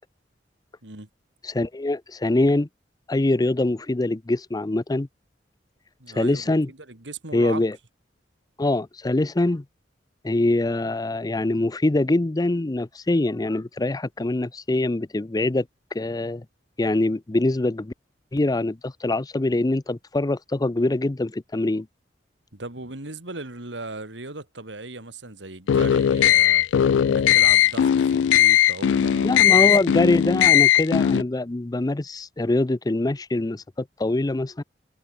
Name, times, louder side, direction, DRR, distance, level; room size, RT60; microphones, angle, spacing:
voice 1, 1.4-2.7 3.1-5.1 6.1-6.7 7.3-7.8 8.6-9.6 10.2-15.7 15.9-16.4 16.8-17.9 18.3-21.9 29.2-34.6, left 2 dB, 20° left, 0.5 m, -24 dB
voice 2, 6.0-7.6 22.5-26.7 27.1-30.3, right 2 dB, 75° right, 3.2 m, -38 dB
sound 1, 25.7-31.2, left 10 dB, 80° left, 0.3 m, -18 dB
head